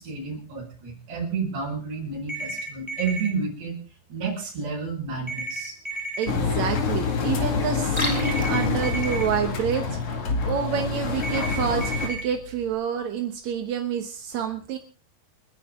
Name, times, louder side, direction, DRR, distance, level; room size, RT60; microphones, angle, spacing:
voice 1, 0.0-3.8 4.1-5.8, right 5 dB, 80° right, -2 dB, 6.9 m, -31 dB
sound 1, 2.3-3.3 5.3-6.3 8.2-9.2 11.2-12.2, right 2 dB, 10° right, 2.3 m, -32 dB
voice 2, 6.2-14.8, right 8 dB, 65° right, 5 dB, 1.8 m, -28 dB
Engine, 6.3-12.1, left 5 dB, 45° left, 2.4 m, -26 dB
Liquid, 7.7-12.7, equal, 10° left, 5.7 m, -38 dB
29.0 x 10.0 x 3.6 m, 0.38 s
omnidirectional pair, 4.8 m